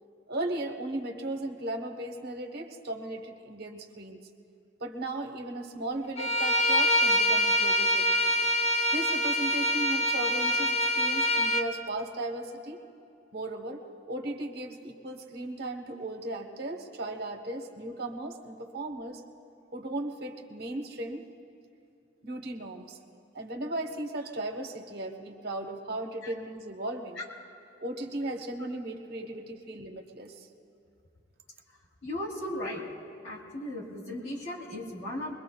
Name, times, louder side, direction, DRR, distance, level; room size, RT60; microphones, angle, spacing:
voice 1, 0.3-4.2 4.8-8.1 8.9-12.8 13.3-19.2 19.7-21.3 22.2-23.0 23.3-27.2 27.8-30.5, right 1 dB, 55° right, 5 dB, 1.1 m, -36 dB
Bowed string instrument, 6.2-11.7, equal, 35° left, 0.6 m, -25 dB
voice 2, 32.0-32.8 33.2-35.4, left 1 dB, 90° left, -4 dB, 3.5 m, -36 dB
23.5 x 22.0 x 2.3 m, 2.6 s
head